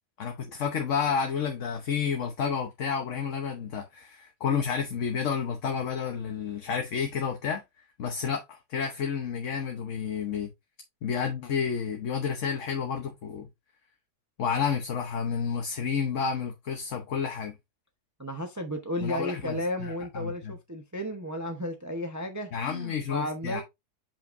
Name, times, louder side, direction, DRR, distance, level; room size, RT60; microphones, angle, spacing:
voice 1, 0.2-7.6 8.0-10.5 11.0-13.5 14.4-17.5 19.0-20.5 22.5-23.6, left 6 dB, 55° left, 1.2 m, -30 dB
voice 2, 18.2-23.6, equal, 15° right, 0.7 m, -34 dB
7.3 x 5.7 x 2.6 m
omnidirectional pair, 1.7 m